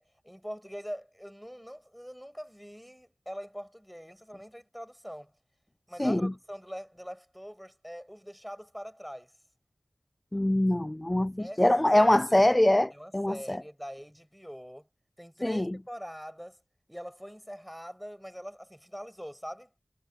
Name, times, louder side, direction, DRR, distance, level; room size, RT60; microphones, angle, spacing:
voice 1, 0.0-5.3 5.9-9.3 11.4-11.6 11.9-12.4 12.9-14.9 15.2-16.6 16.9-19.7, equal, ahead, 6.8 m, -43 dB
voice 2, 6.0-6.3 10.3-13.6 15.4-15.8, left 1 dB, 20° left, 0.6 m, -24 dB
wide cardioid pair, 75°, 0 cm